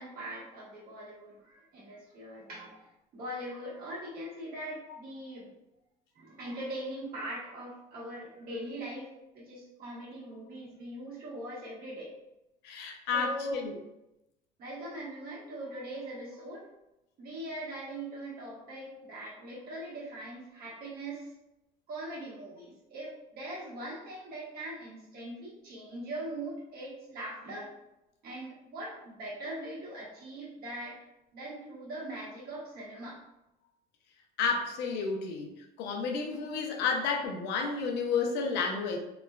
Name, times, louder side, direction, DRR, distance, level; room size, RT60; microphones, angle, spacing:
voice 1, 0.0-5.5 6.1-12.2 13.1-13.7 14.6-16.7 17.2-21.3 21.9-27.7 28.2-31.0 31.3-33.2, right 1 dB, 65° right, -6 dB, 1.3 m, -41 dB
voice 2, 12.6-13.8 34.4-35.5 35.8-39.0, left 5 dB, 85° left, 3 dB, 0.5 m, -31 dB
3.1 x 2.1 x 2.2 m, 0.90 s
cardioid pair, 110°, 17 cm